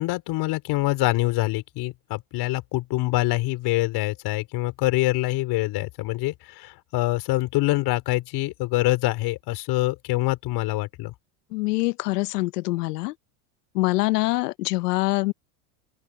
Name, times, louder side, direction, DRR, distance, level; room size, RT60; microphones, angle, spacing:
voice 1, 0.0-11.1, left 19 dB, 55° left, 4.7 m, -25 dB
voice 2, 11.5-13.1 13.7-15.3, left 22 dB, 85° left, 0.9 m, -24 dB
open air
supercardioid pair, 110°, 46 cm